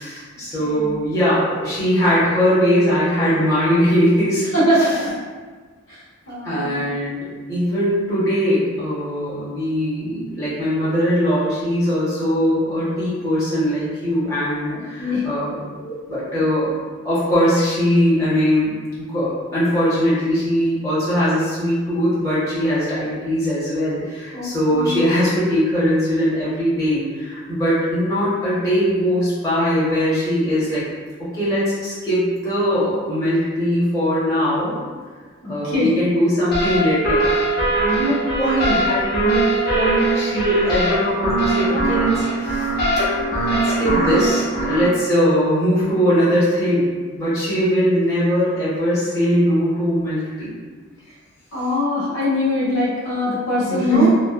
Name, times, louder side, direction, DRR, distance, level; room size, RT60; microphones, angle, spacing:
voice 1, 0.0-4.5 6.4-16.7 17.0-18.7 18.9-30.8 31.2-34.8 35.5-37.3 37.6-39.4 39.7-42.7 43.5-50.6 53.7-54.1, equal, 15° left, -11 dB, 0.8 m, -20 dB
voice 2, 0.6-1.1 4.5-5.1 5.9-6.0 6.3-6.8 15.0-15.2 24.3-25.0 35.4-35.9 43.3-43.4 51.5-54.1, left 1 dB, 80° left, -8 dB, 1.0 m, -22 dB
sound 1, 36.5-44.9, right 1 dB, 50° left, 0.6 m, -21 dB
3.0 x 2.1 x 2.3 m, 1.5 s
head